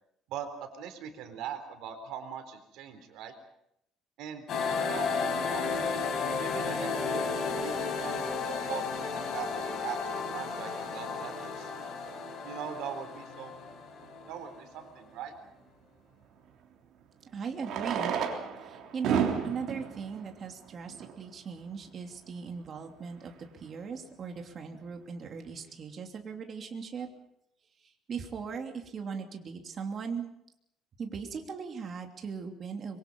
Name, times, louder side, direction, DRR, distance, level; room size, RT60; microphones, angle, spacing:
voice 1, 0.3-3.3 4.2-4.5 4.7-5.9 6.4-11.7 12.4-13.6 14.3-15.3, right 8 dB, 80° right, 7 dB, 4.0 m, -41 dB
sound 1, 4.5-14.8, left 5 dB, 50° left, 5.7 m, -33 dB
Fireworks, 14.0-14.1 16.4-16.5 17.5-21.3 22.1-22.2 22.4-22.5 22.7-22.8 23.3-23.5, right 7 dB, 65° right, 3.3 m, -32 dB
voice 2, 17.3-18.1 18.6-27.1 28.1-30.3 31.0-33.0, right 6 dB, 35° right, 3 dB, 3.0 m, -38 dB
25.0 x 23.5 x 5.5 m, 0.76 s
cardioid pair, 155°, 0 cm